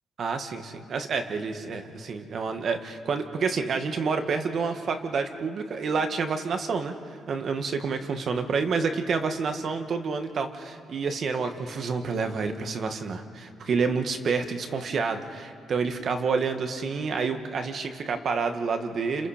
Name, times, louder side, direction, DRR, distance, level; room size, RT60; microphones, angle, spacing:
voice 1, 0.2-6.9 7.3-19.3, right 5 dB, 55° right, 6 dB, 1.7 m, -28 dB
29.0 x 28.5 x 5.1 m, 2.4 s
cardioid pair, 90°, 0 cm